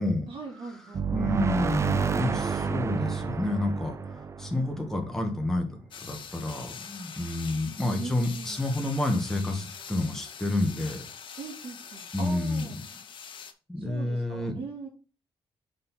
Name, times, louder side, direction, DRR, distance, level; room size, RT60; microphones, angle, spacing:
voice 1, 0.3-1.1 4.5-4.7 8.0-8.7 11.4-12.8 13.8-14.9, right 4 dB, 75° right, 0 dB, 2.1 m, -41 dB
sound 1, 0.9-5.5, right 6 dB, 30° right, 0.5 m, -29 dB
voice 2, 1.1-11.0 12.1-12.7 13.7-14.5, left 2 dB, 5° left, 3 dB, 1.5 m, -29 dB
sound 2, 5.9-13.5, left 7 dB, 60° left, 0.8 m, -43 dB
5.1 x 4.3 x 5.6 m, 0.37 s
wide cardioid pair, 130°, 10 cm